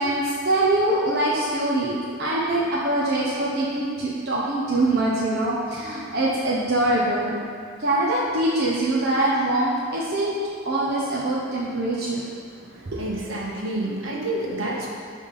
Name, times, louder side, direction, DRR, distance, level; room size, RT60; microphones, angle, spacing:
voice 1, 0.0-7.4 7.8-10.4 10.6-12.2 12.9-13.0, right 1 dB, 55° right, -7 dB, 1.0 m, -23 dB
voice 2, 12.6-14.9, right 1 dB, 70° right, -3 dB, 1.5 m, -29 dB
11.0 x 3.7 x 5.5 m, 2.2 s
head